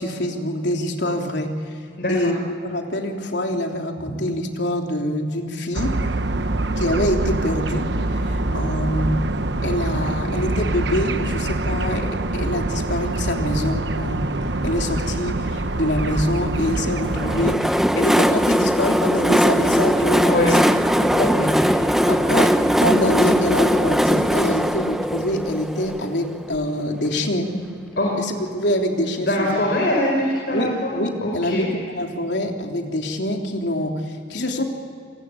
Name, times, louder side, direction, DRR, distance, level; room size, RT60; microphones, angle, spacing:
voice 1, 0.0-1.5 2.1-5.9 6.8-9.2 9.6-14.4 14.6-20.6 21.0-27.5 28.2-29.6 30.5-34.6, left 1 dB, 75° left, 2 dB, 3.4 m, -25 dB
voice 2, 2.0-2.3 20.2-20.5 28.0-28.2 29.3-31.7, left 1 dB, 55° left, -1 dB, 4.8 m, -22 dB
sound 1, 5.7-17.6, right 2 dB, 75° right, 1.1 m, -25 dB
Train, 17.0-26.6, equal, ahead, 0.8 m, -20 dB
28.0 x 20.5 x 8.5 m, 2.3 s
head